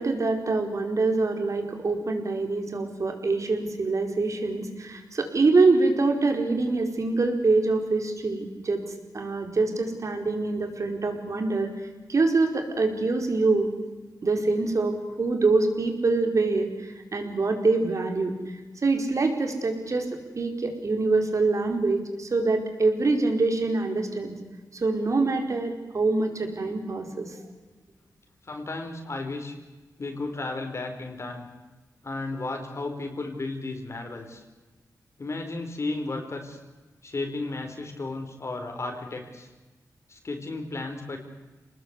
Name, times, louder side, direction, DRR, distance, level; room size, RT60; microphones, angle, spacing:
voice 1, 0.0-11.7 12.1-13.7 14.2-24.4 24.7-27.3, right 3 dB, 50° right, 5 dB, 4.8 m, -25 dB
voice 2, 28.4-29.5 30.0-31.5 32.0-34.4 35.2-36.6 37.0-39.5 40.1-41.2, left 2 dB, 45° left, 3 dB, 4.5 m, -34 dB
29.5 x 20.0 x 8.3 m, 1.2 s
wide cardioid pair, 100°, 7 cm